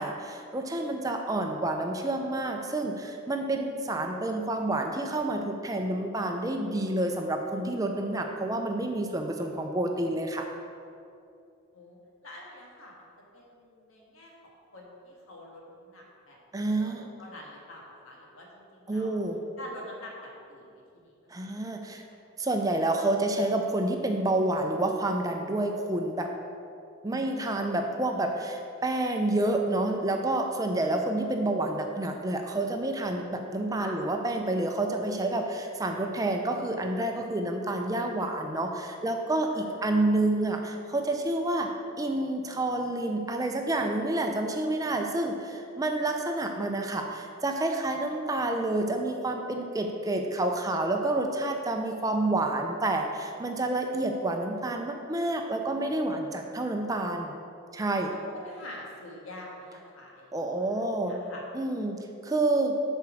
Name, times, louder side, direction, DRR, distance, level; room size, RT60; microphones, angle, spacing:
voice 1, 0.0-10.5 16.5-17.1 18.9-19.4 21.3-22.0 22.4-26.3 27.0-41.7 42.0-57.3 57.7-58.1 60.3-61.2 61.5-62.8, right 2 dB, 15° right, 3 dB, 0.4 m, -29 dB
voice 2, 11.7-19.1 19.6-21.1 21.4-21.5 27.0-27.8 33.8-33.9 39.5-40.2 58.1-60.8 61.1-61.4, left 1 dB, 90° left, -2 dB, 1.6 m, -47 dB
7.3 x 4.5 x 6.2 m, 2.5 s
head